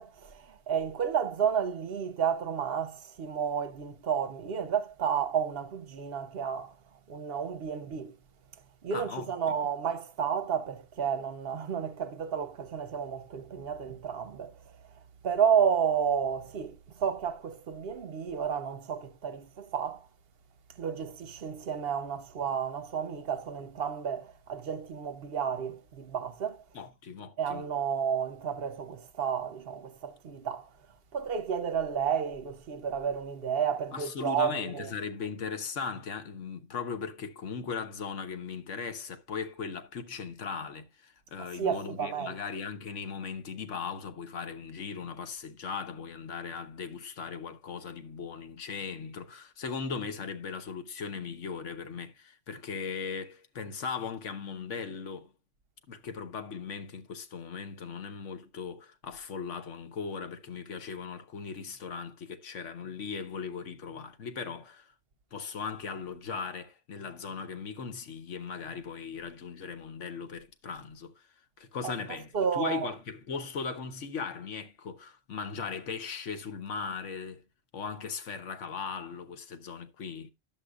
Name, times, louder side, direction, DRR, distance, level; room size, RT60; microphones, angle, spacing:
voice 1, 0.0-6.7 7.1-8.1 8.8-14.5 15.2-20.1 20.8-26.6 27.4-30.7 31.1-34.9 41.4-42.4 71.8-71.9 72.3-72.9, right 7 dB, 55° right, 0.9 m, -31 dB
voice 2, 8.9-9.6 26.7-27.6 33.9-55.3 55.9-64.9 65.3-71.2 71.6-77.4 77.7-80.3, left 5 dB, 75° left, 1.3 m, -38 dB
11.0 x 7.5 x 2.4 m
omnidirectional pair, 1.3 m